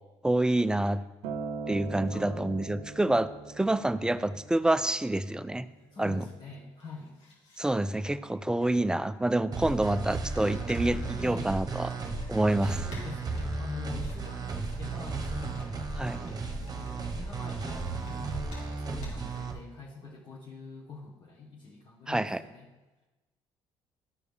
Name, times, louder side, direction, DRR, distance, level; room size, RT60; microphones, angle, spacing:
voice 1, 0.2-1.0 1.7-3.3 3.6-5.7 6.0-6.3 7.6-11.9 12.3-12.8 16.0-16.2 22.1-22.4, right 1 dB, 5° right, 14 dB, 0.4 m, -27 dB
Acoustic guitar, 1.2-5.5 6.4-6.5, right 4 dB, 80° right, 0.6 m, -41 dB
voice 2, 2.1-2.6 5.9-7.1 11.2-11.6 12.6-15.7 16.6-22.7, left 4 dB, 45° left, -2 dB, 1.3 m, -45 dB
sound 1, 4.8-4.9 5.5-6.3 6.6-7.6 8.6-8.7 10.3-18.2 18.5-18.7 19.0-19.2, left 2 dB, 80° left, 2.5 m, -52 dB
sound 2, 9.5-19.5, right 4 dB, 35° right, 1.0 m, -35 dB
12.0 x 4.9 x 3.3 m, 1.1 s
supercardioid pair, 80°, 11 cm